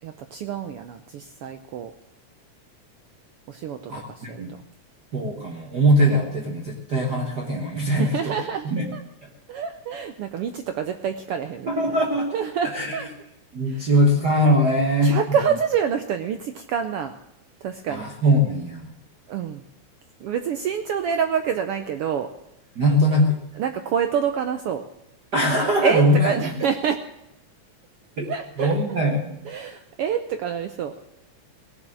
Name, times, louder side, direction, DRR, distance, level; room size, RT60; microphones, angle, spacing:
voice 1, 0.0-1.9 3.5-4.4 7.9-9.0 9.5-12.0 12.3-13.1 13.7-13.9 15.0-17.1 17.6-18.0 19.3-19.6 20.2-22.3 23.6-24.8 25.8-27.0 28.3-28.7 29.5-30.9, right 7 dB, 75° right, 8 dB, 1.3 m, -27 dB
voice 2, 3.9-4.5 5.1-8.3 8.6-8.9 11.7-12.3 12.7-13.1 13.5-15.2 17.9-18.9 22.7-23.4 25.3-26.3 28.2-28.3 28.6-29.4, equal, 40° right, 0 dB, 1.6 m, -21 dB
17.5 x 7.3 x 8.8 m, 0.84 s
omnidirectional pair, 3.4 m